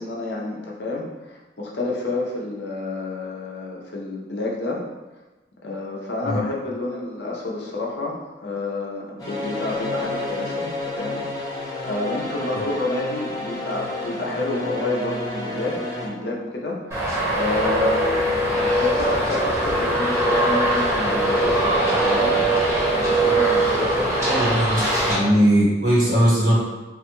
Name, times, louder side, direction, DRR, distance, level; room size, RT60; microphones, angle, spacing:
voice 1, 0.0-4.8 5.6-22.4 22.8-24.2, left 2 dB, 70° left, -2 dB, 0.6 m, -29 dB
sound 1, 9.2-16.1, left 2 dB, 20° left, 0.7 m, -30 dB
Traffic noise roadway noise, 16.9-25.1, right 1 dB, 15° right, 0.8 m, -21 dB
voice 2, 24.3-24.8 25.1-26.6, equal, 70° right, -8 dB, 1.3 m, -19 dB
3.3 x 2.2 x 3.0 m, 1.1 s
head